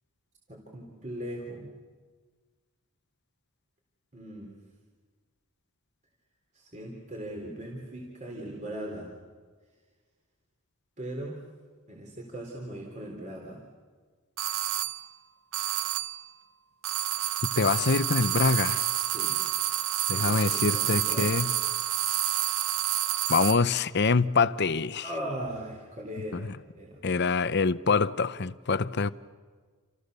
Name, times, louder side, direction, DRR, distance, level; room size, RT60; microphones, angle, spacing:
voice 1, 0.5-1.7 4.1-4.6 6.5-9.1 11.0-11.4 11.9-13.6 19.0-19.4 20.1-21.5 25.0-27.0, right 1 dB, 35° right, 3.8 m, -39 dB
sound 1, 14.4-15.1 15.5-16.3 16.8-23.7, right 12 dB, 60° right, 0.9 m, -29 dB
voice 2, 17.6-18.9 20.1-21.5 23.3-25.1 26.3-26.5 27.0-29.1, left 4 dB, 50° left, 0.7 m, -25 dB
29.0 x 28.0 x 6.9 m
head